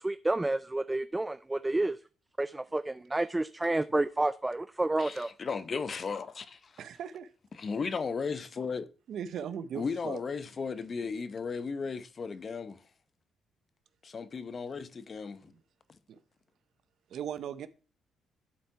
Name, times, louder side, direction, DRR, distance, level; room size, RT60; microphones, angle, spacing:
voice 1, 0.0-2.0 2.4-5.3, right 2 dB, 15° right, 0.3 m, -30 dB
voice 2, 5.0-6.7 7.5-8.9 9.7-12.8 14.0-15.5, left 5 dB, 40° left, 0.7 m, -35 dB
voice 3, 6.8-7.3 9.1-10.2 16.1-16.2 17.1-17.7, right 8 dB, 70° right, 0.7 m, -38 dB
11.5 x 4.3 x 4.7 m
cardioid pair, 90°, 0 cm